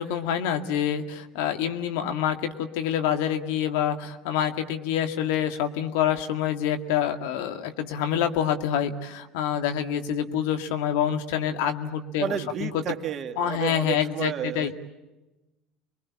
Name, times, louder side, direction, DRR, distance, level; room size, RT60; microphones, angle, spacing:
voice 1, 0.0-12.7 13.4-14.7, left 9 dB, 75° left, 7 dB, 2.1 m, -27 dB
voice 2, 12.2-14.8, right 9 dB, 45° right, 3 dB, 2.5 m, -31 dB
29.5 x 23.0 x 8.6 m, 1.0 s
hypercardioid pair, 75°, 0 cm